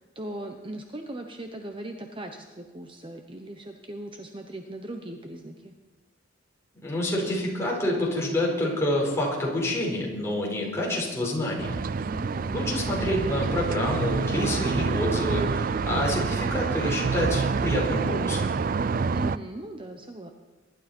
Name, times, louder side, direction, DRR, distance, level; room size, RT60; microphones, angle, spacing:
voice 1, 0.0-5.7 12.0-12.6 19.1-20.3, right 1 dB, 25° right, 4 dB, 0.9 m, -39 dB
voice 2, 6.7-11.7 12.5-18.5, left 1 dB, 15° left, -3 dB, 5.0 m, -27 dB
sound 1, 11.6-19.4, right 5 dB, 45° right, 0.4 m, -27 dB
23.5 x 12.0 x 4.5 m, 1.3 s
head